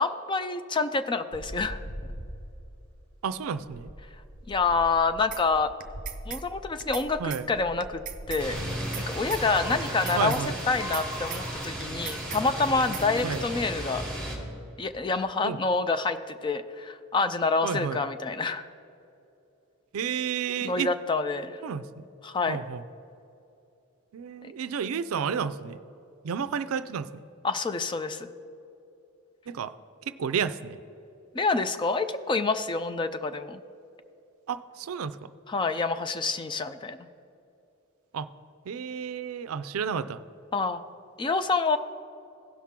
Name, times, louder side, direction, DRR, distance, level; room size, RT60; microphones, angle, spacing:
voice 1, 0.0-1.8 4.5-5.7 6.3-8.0 8.3-8.6 9.0-10.4 10.7-14.1 14.8-18.7 20.6-21.6 22.2-22.6 24.4-24.5 27.4-28.3 31.3-33.6 35.5-37.1 40.5-40.8 41.2-41.8, left 4 dB, 20° left, 10 dB, 0.4 m, -27 dB
sound 1, 1.3-9.5, equal, 65° left, 1.0 m, -43 dB
voice 2, 3.2-3.9 7.2-7.5 10.1-10.6 13.2-13.4 15.4-15.6 17.6-18.0 19.9-20.9 21.6-22.0 22.5-22.8 24.1-25.8 26.2-27.2 29.5-29.7 30.1-30.8 34.5-35.3 38.1-38.3 38.7-40.2, right 7 dB, 90° right, 14 dB, 0.4 m, -31 dB
sound 2, 5.3-5.4 5.8-6.4 6.8-7.0 7.3-7.4 7.8-8.4 8.8-9.0 9.3-9.4 9.8-10.4 10.8-11.0 11.3-11.4 11.8-12.4 12.8-13.0, right 10 dB, 40° right, 0.6 m, -38 dB
sound 3, 8.4-14.4, right 1 dB, 5° left, 2.1 m, -34 dB
16.0 x 5.8 x 3.6 m, 2.8 s
head